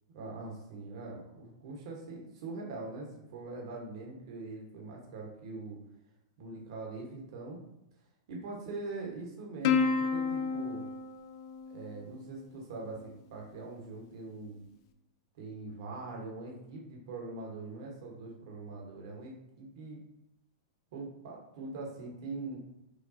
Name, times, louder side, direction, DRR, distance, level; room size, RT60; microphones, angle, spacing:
voice 1, 0.1-5.8 6.4-7.6 8.3-10.8 11.7-14.6 15.3-20.0 20.9-22.6, right 3 dB, 65° right, -1 dB, 1.2 m, -42 dB
Plucked string instrument, 9.6-12.4, left 5 dB, 50° left, 0.4 m, -31 dB
5.0 x 2.3 x 2.7 m, 0.85 s
hypercardioid pair, 125°, 3 cm